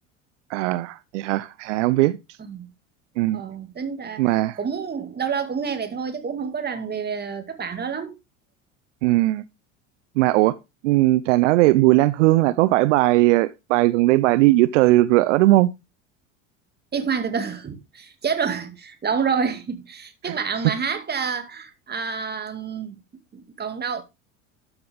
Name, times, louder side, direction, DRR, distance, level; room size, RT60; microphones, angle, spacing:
voice 1, 0.5-2.2 3.2-3.4 4.2-4.6 9.0-9.4 10.2-10.6 10.8-15.7 20.2-20.4, right 18 dB, 70° right, 0.6 m, -18 dB
voice 2, 3.3-4.3 4.6-8.1 16.9-23.0 23.3-24.0, right 6 dB, 25° right, 2.3 m, -28 dB
13.0 x 5.8 x 3.5 m
hypercardioid pair, 80°, 38 cm